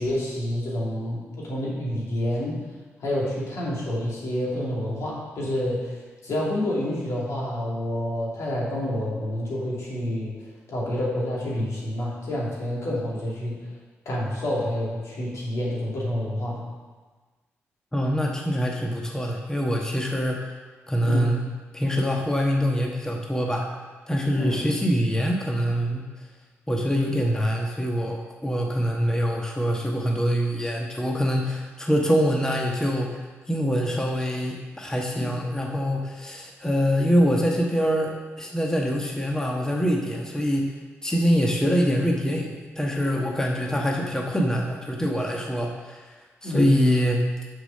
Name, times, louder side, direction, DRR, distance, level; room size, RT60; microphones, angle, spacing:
voice 1, 0.0-2.6 3.0-6.0 6.2-10.3 10.7-13.6 14.1-16.6 21.0-21.3 24.4-24.7 28.6-28.7 35.2-35.4 46.4-46.8, left 1 dB, 70° left, -5 dB, 2.7 m, -28 dB
voice 2, 17.9-20.4 20.9-21.4 21.7-23.7 24.1-26.1 26.7-33.2 33.5-40.7 41.0-46.1 46.4-47.3, equal, 10° left, 0 dB, 1.3 m, -24 dB
6.7 x 5.8 x 6.6 m, 1.3 s
supercardioid pair, 60°, 5 cm